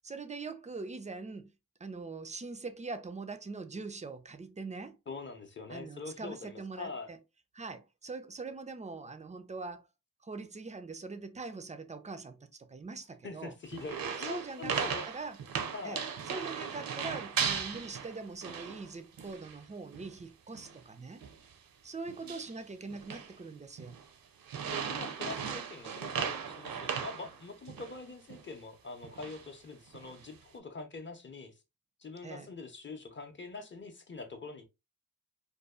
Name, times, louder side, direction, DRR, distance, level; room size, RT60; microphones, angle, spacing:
voice 1, 0.0-1.5 1.8-5.0 5.7-7.2 7.5-9.8 10.2-13.5 14.2-15.4 15.8-21.3 21.8-24.0 32.2-32.5, right 3 dB, 20° right, 0.3 m, -42 dB
voice 2, 5.1-7.1 13.2-15.0 15.7-16.0 16.6-16.7 22.2-22.4 24.7-31.6 32.0-34.6, left 4 dB, 35° left, 0.6 m, -44 dB
sound 1, 13.7-18.9 19.2-19.6 19.9-20.1 20.5-20.8 21.2-21.5 22.1-22.6 22.9-23.3 23.8-24.1 24.5-28.0 28.3-28.4 29.0-29.5 29.9-30.4, right 7 dB, 75° right, 0.5 m, -37 dB
2.6 x 2.3 x 2.3 m
cardioid pair, 60°, 35 cm